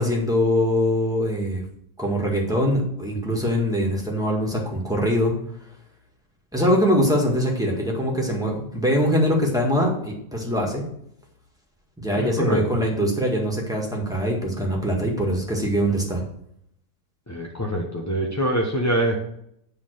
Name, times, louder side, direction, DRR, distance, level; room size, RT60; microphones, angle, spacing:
voice 1, 0.0-1.6 2.0-5.3 6.5-10.9 12.0-16.2, equal, ahead, -2 dB, 1.7 m, -23 dB
voice 2, 12.2-12.7 17.3-19.2, right 1 dB, 20° left, -1 dB, 0.5 m, -24 dB
9.7 x 3.8 x 6.5 m, 0.74 s
omnidirectional pair, 1.9 m